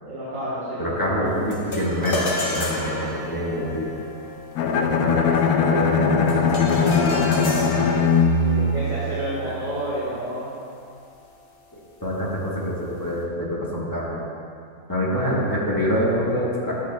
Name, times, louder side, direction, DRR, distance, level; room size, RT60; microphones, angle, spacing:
voice 1, 0.0-0.8 1.1-1.3 8.4-10.6 15.1-15.3, right 1 dB, 60° right, -10 dB, 2.1 m, -30 dB
voice 2, 0.8-3.9 4.6-7.5 9.4-9.5 11.7-14.2 14.9-16.8, equal, 15° left, -7 dB, 1.3 m, -26 dB
sound 1, 1.5-11.0, left 2 dB, 40° left, 1.1 m, -33 dB
Bowed string instrument, 4.6-9.6, left 4 dB, 75° left, 1.1 m, -20 dB
12.0 x 8.6 x 2.3 m, 2.5 s
omnidirectional pair, 1.6 m